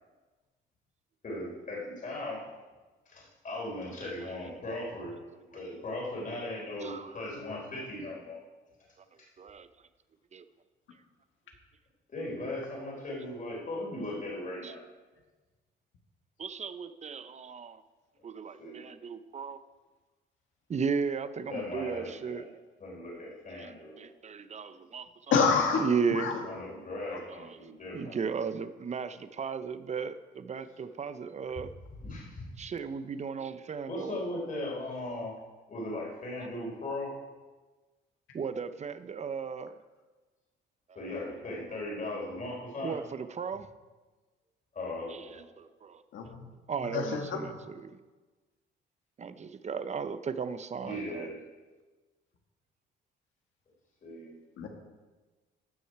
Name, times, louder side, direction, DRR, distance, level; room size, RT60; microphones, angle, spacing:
voice 1, 1.2-2.4 3.1-5.1 5.5-8.4 9.2-9.3 12.1-14.8 18.6-18.8 21.5-22.5 22.8-24.0 26.4-28.2 30.8-30.9 32.0-32.5 33.9-35.3 35.7-37.1 41.0-43.0 44.7-45.4 50.8-51.4 54.0-54.4, left 1 dB, 40° left, -3 dB, 3.9 m, -38 dB
voice 2, 4.0-4.3 5.5-5.6 6.8-7.2 9.4-9.7 10.3-10.4 14.6-14.7 16.4-17.8 18.2-19.6 20.7-22.4 23.5-25.4 25.8-26.3 27.3-27.6 27.9-31.7 32.6-34.2 36.4-36.5 38.3-39.7 42.8-43.7 45.1-46.0 46.7-48.0 49.2-51.3, right 6 dB, 35° right, 12 dB, 0.7 m, -35 dB
voice 3, 25.3-25.8 26.1-26.4 46.1-46.5 46.9-47.4 54.6-54.7, left 5 dB, 80° left, 3 dB, 1.8 m, -27 dB
14.5 x 6.3 x 4.7 m, 1.3 s
cardioid pair, 90°, 20 cm